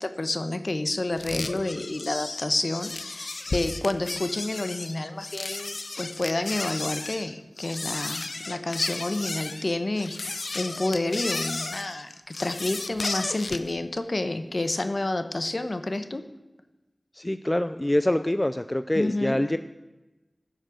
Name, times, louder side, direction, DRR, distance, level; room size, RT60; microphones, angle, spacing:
voice 1, 0.0-16.2 18.9-19.4, left 2 dB, 55° left, 9 dB, 1.0 m, -29 dB
sound 1, 1.2-13.7, left 3 dB, 75° left, 0.6 m, -34 dB
voice 2, 17.1-19.6, left 1 dB, 20° left, 11 dB, 0.4 m, -25 dB
15.0 x 6.4 x 6.4 m, 1.1 s
wide cardioid pair, 60°, 0 cm